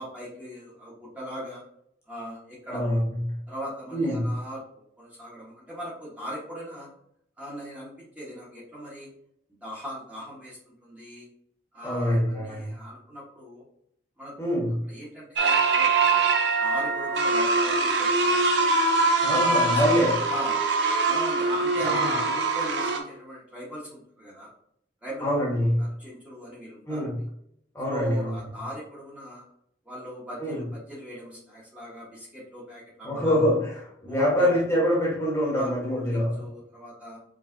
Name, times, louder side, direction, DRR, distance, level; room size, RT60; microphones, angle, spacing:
voice 1, 0.0-1.6 2.1-3.0 3.5-6.9 7.4-9.1 9.6-11.3 11.7-13.6 14.2-16.3 16.6-18.5 19.3-19.8 20.3-20.6 21.1-24.5 25.0-25.3 25.6-27.1 27.9-29.4 29.8-33.4 34.1-34.5 35.5-37.2, equal, 5° right, -8 dB, 1.1 m, -39 dB
voice 2, 2.7-3.2 3.9-4.3 11.8-12.7 14.4-14.8 19.2-20.2 21.8-22.1 25.2-25.8 26.9-27.2 27.7-28.4 30.4-30.6 33.0-36.4, equal, 15° left, -5 dB, 1.1 m, -25 dB
sound 1, 15.4-23.0, right 3 dB, 70° right, 0.6 m, -23 dB
4.7 x 3.3 x 2.6 m, 0.71 s
head